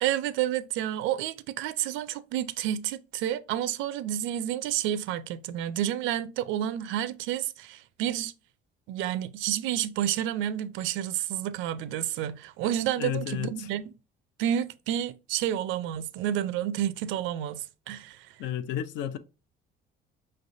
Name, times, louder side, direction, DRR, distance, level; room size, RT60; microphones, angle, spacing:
voice 1, 0.0-8.3 8.9-13.9 14.4-18.3, right 11 dB, 90° right, 0.5 m, -30 dB
voice 2, 13.0-13.7 18.4-19.2, left 10 dB, 70° left, 0.6 m, -32 dB
5.8 x 3.2 x 2.6 m
cardioid pair, 155°, 19 cm